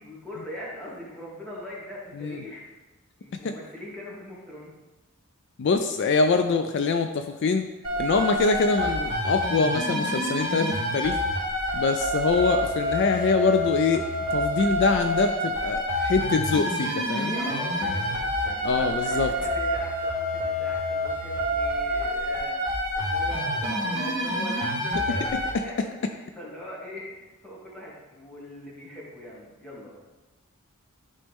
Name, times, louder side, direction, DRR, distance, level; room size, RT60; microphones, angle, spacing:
voice 1, 0.0-2.6 3.2-4.7 17.2-22.6 23.0-30.1, equal, 5° left, -6 dB, 1.7 m, -41 dB
voice 2, 5.6-7.6 8.0-11.2 11.7-14.0 14.3-17.3 18.6-19.3, left 4 dB, 55° left, 7 dB, 0.3 m, -24 dB
sound 1, 7.8-25.5, equal, 20° right, 2.6 m, -28 dB
10.5 x 4.1 x 3.5 m, 1.1 s
head